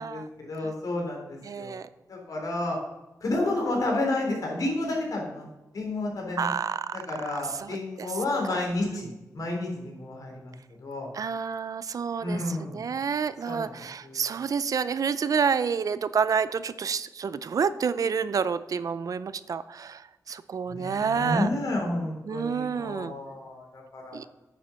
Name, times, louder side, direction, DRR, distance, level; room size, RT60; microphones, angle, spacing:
voice 1, 0.0-1.8 2.1-2.8 3.2-5.5 5.7-6.5 6.9-9.1 9.3-10.5 10.8-11.1 12.2-12.8 13.5-13.7 14.0-14.2 20.7-24.3, left 2 dB, 65° left, 0 dB, 3.5 m, -31 dB
voice 2, 1.4-1.9 6.4-7.0 7.3-8.1 8.5-8.6 8.9-9.1 11.1-12.4 12.7-20.0 20.3-21.5 22.2-23.1 24.1-24.3, right 6 dB, 65° right, 15 dB, 0.5 m, -29 dB
9.4 x 7.7 x 5.6 m, 1.0 s
wide cardioid pair, 135°, 6 cm